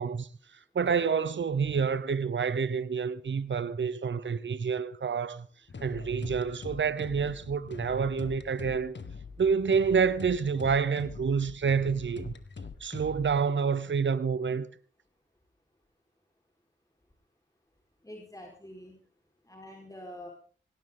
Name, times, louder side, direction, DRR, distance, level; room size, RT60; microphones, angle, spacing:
voice 1, 0.0-5.5 5.8-9.0 9.4-12.3 12.8-14.7, right 6 dB, 70° right, 0.8 m, -28 dB
sound 1, 5.7-13.4, left 5 dB, 65° left, 1.6 m, -43 dB
voice 2, 18.0-19.0 19.4-20.3, left 1 dB, 15° left, 4.6 m, -45 dB
18.5 x 17.5 x 3.9 m
cardioid pair, 55°, 20 cm